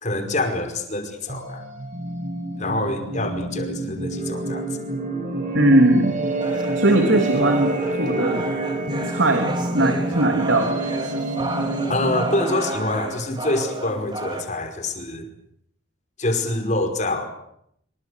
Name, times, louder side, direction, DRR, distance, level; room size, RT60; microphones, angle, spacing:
voice 1, 0.0-1.7 2.6-4.7 11.9-15.3 16.2-17.3, left 2 dB, 40° left, 6 dB, 5.2 m, -26 dB
sound 1, 1.3-12.7, right 2 dB, 40° right, 5.6 m, -28 dB
voice 2, 5.5-6.1 6.8-8.4 9.1-10.7, right 1 dB, 85° right, 5 dB, 3.3 m, -19 dB
sound 2, 6.4-14.4, right 1 dB, 25° right, 4.3 m, -32 dB
26.5 x 24.0 x 8.4 m, 0.73 s
head